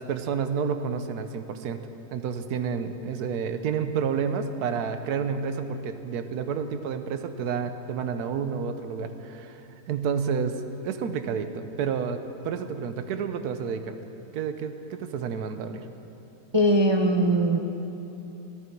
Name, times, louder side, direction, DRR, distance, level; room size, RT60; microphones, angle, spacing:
voice 1, 0.0-1.8 2.1-9.6 9.9-10.6 10.8-14.0 14.3-15.8, right 6 dB, 70° right, 9 dB, 1.3 m, -30 dB
voice 2, 16.5-17.6, right 1 dB, 30° right, 1 dB, 0.4 m, -20 dB
16.0 x 14.0 x 4.6 m, 2.9 s
omnidirectional pair, 1.8 m